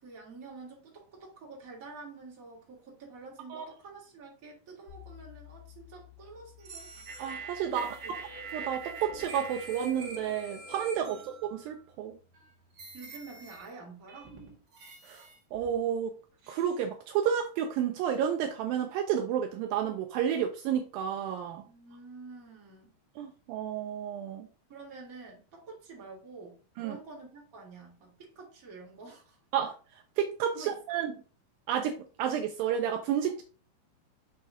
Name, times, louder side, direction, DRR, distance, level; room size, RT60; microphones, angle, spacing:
voice 1, 0.0-6.9 7.6-8.1 11.0-11.2 12.9-14.3 21.7-22.9 24.7-29.4 30.5-30.8, right 3 dB, 25° right, 2.0 m, -48 dB
sound 1, 4.9-13.6, left 12 dB, 45° left, 3.0 m, -57 dB
sound 2, 6.6-11.8 12.3-12.4 12.8-13.7 14.1-15.8 16.4-16.8, right 4 dB, 50° right, 1.5 m, -44 dB
voice 2, 7.2-8.0 8.5-12.1 15.0-15.2 15.5-16.1 16.5-21.6 23.2-24.5 26.8-27.0 29.5-31.1 31.7-33.4, right 9 dB, 85° right, 2.1 m, -31 dB
6.6 x 5.6 x 3.7 m
omnidirectional pair, 4.6 m